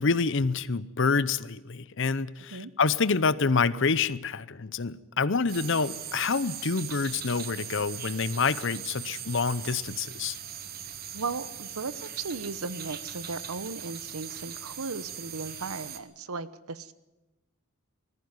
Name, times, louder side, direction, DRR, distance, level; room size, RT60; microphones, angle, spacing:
voice 1, 0.0-10.4, left 4 dB, 55° left, 17 dB, 0.7 m, -27 dB
sound 1, 5.5-16.0, right 9 dB, 45° right, 1.3 m, -40 dB
voice 2, 11.1-16.9, right 4 dB, 80° right, 15 dB, 1.0 m, -36 dB
20.0 x 14.5 x 9.7 m, 1.0 s
head